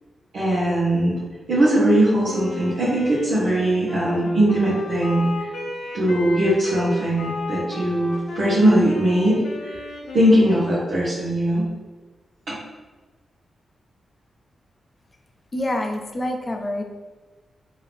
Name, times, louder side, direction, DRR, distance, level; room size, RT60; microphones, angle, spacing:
voice 1, 0.3-1.2 1.5-5.5 5.9-9.4 10.1-11.6 12.5-12.6, right 1 dB, 75° right, -10 dB, 1.1 m, -20 dB
Wind instrument woodwind instrument, 2.2-11.1, left 2 dB, 85° left, 0.7 m, -33 dB
voice 2, 15.5-16.8, left 1 dB, 30° left, 4 dB, 0.5 m, -26 dB
3.6 x 2.7 x 3.4 m, 1.3 s
cardioid pair, 90°, 0 cm